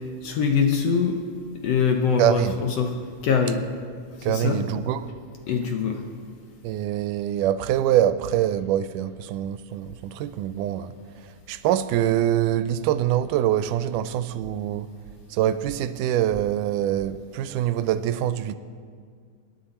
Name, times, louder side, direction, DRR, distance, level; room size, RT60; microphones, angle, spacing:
voice 1, 0.2-1.2 1.6-2.9 3.2-3.6 4.3-4.6 5.5-6.0, left 6 dB, 65° left, 1.7 m, -23 dB
voice 2, 2.2-2.6 4.2-5.1 6.6-10.9 11.2-14.9 15.3-18.5, right 11 dB, 90° right, 2.2 m, -24 dB
25.5 x 10.5 x 4.3 m
omnidirectional pair, 3.6 m